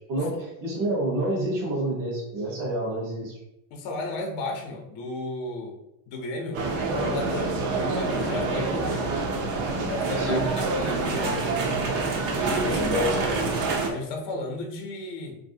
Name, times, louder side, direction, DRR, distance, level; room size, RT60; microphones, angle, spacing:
voice 1, 0.1-3.4 10.2-10.5 12.9-13.1, right 1 dB, 65° right, -3 dB, 1.0 m, -28 dB
voice 2, 3.7-5.8 6.1-6.6 6.9-9.0 9.9-11.3 12.5-13.1 13.8-15.4, left 2 dB, 45° left, 2 dB, 0.6 m, -33 dB
sound 1, 6.5-13.9, right 3 dB, 50° right, 0.6 m, -26 dB
2.9 x 2.6 x 2.6 m, 0.86 s
cardioid pair, 150°, 41 cm